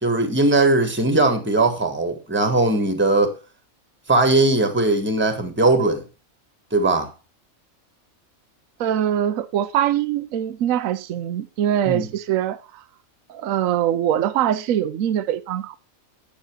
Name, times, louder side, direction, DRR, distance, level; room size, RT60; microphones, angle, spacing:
voice 1, 0.0-3.3 4.1-6.0 6.7-7.1 11.8-12.1, right 2 dB, 10° right, 1.4 m, -19 dB
voice 2, 8.8-12.8 13.3-15.8, right 10 dB, 70° right, 1.1 m, -23 dB
9.9 x 6.3 x 4.4 m
omnidirectional pair, 1.5 m